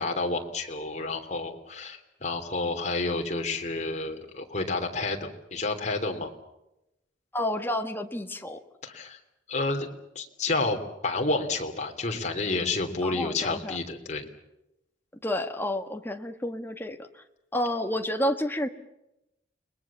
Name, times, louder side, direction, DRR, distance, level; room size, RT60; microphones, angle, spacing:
voice 1, 0.0-6.3 8.8-9.2 9.5-9.9 10.1-14.3, left 3 dB, 40° left, 3 dB, 3.2 m, -30 dB
voice 2, 7.3-8.6 13.0-13.8 15.2-17.2 17.5-18.7, left 1 dB, 10° left, 5 dB, 1.6 m, -30 dB
30.0 x 21.0 x 7.3 m, 0.89 s
head